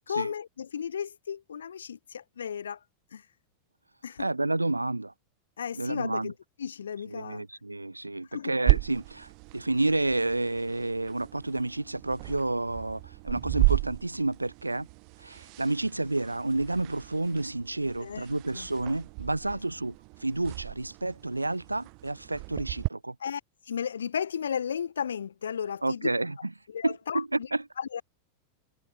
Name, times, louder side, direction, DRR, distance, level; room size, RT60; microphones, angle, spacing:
voice 1, 0.1-2.8 3.1-3.2 4.0-4.3 5.6-7.4 8.3-8.6 18.0-18.3 18.5-18.7 19.5-19.6 23.2-23.4 23.7-26.1 26.7-27.5 27.8-28.0, left 7 dB, 70° left, 2.8 m, -34 dB
voice 2, 4.2-5.1 5.7-6.3 7.1-14.9 15.2-19.9 20.2-23.1 25.8-26.5 26.8-27.6, right 2 dB, 85° right, 3.9 m, -30 dB
sound 1, 8.7-22.9, right 38 dB, 45° right, 5.4 m, -33 dB
figure-of-eight pair, 90°, 0 cm